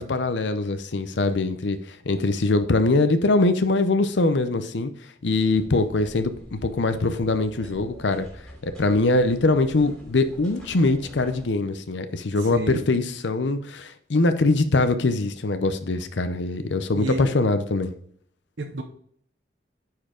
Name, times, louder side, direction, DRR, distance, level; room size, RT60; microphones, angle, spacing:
voice 1, 0.0-4.9 5.2-8.3 8.6-17.9, left 2 dB, 90° left, 10 dB, 0.7 m, -23 dB
sound 1, 5.6-11.5, equal, 5° left, 2.8 m, -45 dB
voice 2, 12.3-12.8 16.9-17.3 18.6-18.8, right 2 dB, 90° right, 4 dB, 0.9 m, -31 dB
9.6 x 4.6 x 3.8 m, 0.64 s
head